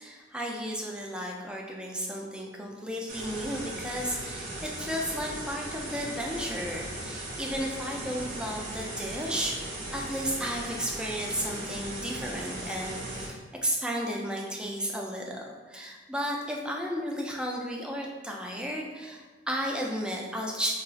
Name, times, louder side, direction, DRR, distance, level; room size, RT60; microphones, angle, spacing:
voice 1, 0.0-20.7, equal, 5° right, -1 dB, 0.3 m, -33 dB
sound 1, 3.1-13.3, right 1 dB, 45° right, 0.7 m, -38 dB
2.3 x 2.3 x 3.9 m, 1.3 s
head